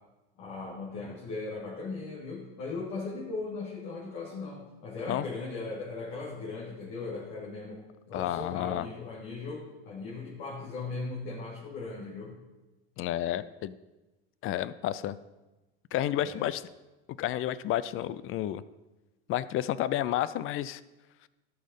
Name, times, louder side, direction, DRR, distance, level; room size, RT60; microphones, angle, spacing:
voice 1, 0.4-12.3 16.2-16.5, left 3 dB, 70° left, -6 dB, 2.6 m, -38 dB
voice 2, 8.1-8.9 13.0-13.7 14.4-15.2 15.9-16.6 17.2-18.6 19.3-20.8, left 12 dB, 45° left, 17 dB, 0.5 m, -30 dB
12.5 x 5.6 x 5.4 m, 1.1 s
supercardioid pair, 100°, 29 cm